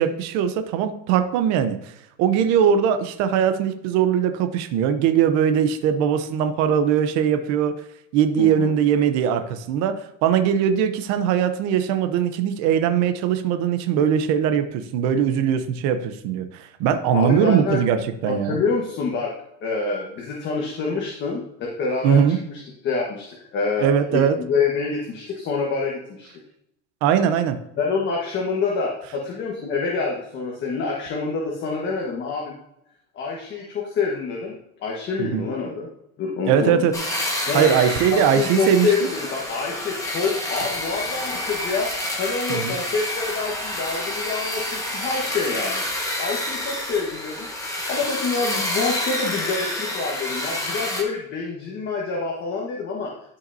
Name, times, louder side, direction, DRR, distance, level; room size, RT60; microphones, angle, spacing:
voice 1, 0.0-1.9 2.2-7.7 8.1-18.6 22.0-22.4 23.8-24.4 27.0-27.6 35.2-35.4 36.5-36.9 37.5-38.9 42.5-42.8, right 8 dB, 45° right, 8 dB, 0.8 m, -20 dB
voice 2, 8.4-8.7 17.1-17.8 18.3-19.3 19.6-23.9 24.1-26.3 27.8-32.5 33.1-34.5 34.8-35.9 36.2-36.9 37.5-37.7 38.1-41.9 42.2-45.8 46.2-47.5 47.9-53.1, left 4 dB, 30° left, -2 dB, 1.4 m, -26 dB
sound 1, 36.9-51.0, left 1 dB, 10° left, 1.5 m, -28 dB
12.5 x 5.6 x 2.7 m, 0.79 s
supercardioid pair, 150°, 37 cm